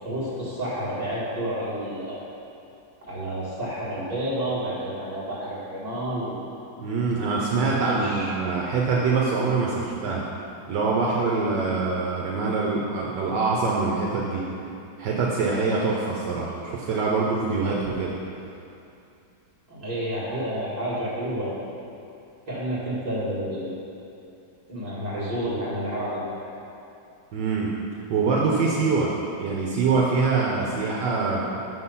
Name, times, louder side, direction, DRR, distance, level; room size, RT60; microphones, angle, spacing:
voice 1, 0.0-2.2 3.0-6.4 7.5-8.3 17.6-17.8 19.7-21.6 22.5-23.8 24.7-26.2, right 1 dB, 20° right, -9 dB, 2.0 m, -30 dB
voice 2, 6.8-10.3 10.7-14.4 15.0-18.2 27.3-27.7 28.1-29.1 29.4-31.4, right 4 dB, 70° right, -3 dB, 1.3 m, -24 dB
6.1 x 5.9 x 5.6 m, 2.7 s
omnidirectional pair, 2.0 m